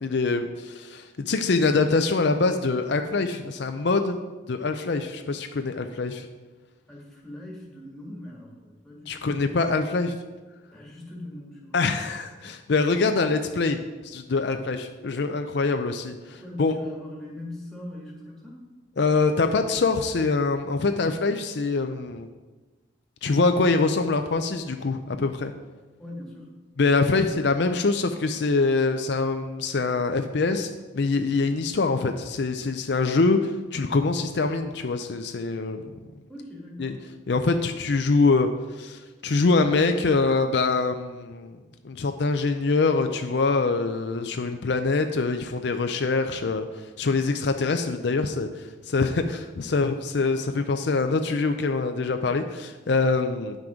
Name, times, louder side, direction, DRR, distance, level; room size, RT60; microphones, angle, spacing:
voice 1, 0.0-4.2 4.5-6.3 9.1-10.2 11.7-13.8 14.0-16.7 19.0-22.3 23.2-25.5 26.8-35.9 36.8-37.0 37.3-41.6 41.8-53.6, left 3 dB, 60° left, 7 dB, 0.5 m, -24 dB
voice 2, 6.9-9.6 10.7-11.8 16.3-18.6 26.0-26.5 36.3-37.0, left 1 dB, 5° left, -4 dB, 1.7 m, -41 dB
9.1 x 6.0 x 5.0 m, 1.2 s
head